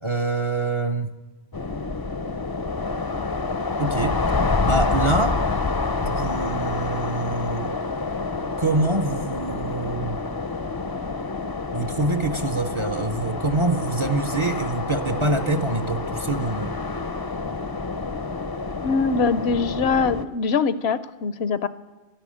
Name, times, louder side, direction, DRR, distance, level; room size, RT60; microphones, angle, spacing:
voice 1, 0.0-1.2 3.8-4.2 4.6-5.4 6.0-7.8 8.6-10.3 11.7-16.8, right 2 dB, 35° right, 9 dB, 0.6 m, -25 dB
sound 1, 1.5-20.3, left 3 dB, 30° left, 0.5 m, -28 dB
voice 2, 18.8-21.7, left 5 dB, 75° left, 15 dB, 0.9 m, -23 dB
12.5 x 11.0 x 8.5 m, 1.2 s
omnidirectional pair, 1.1 m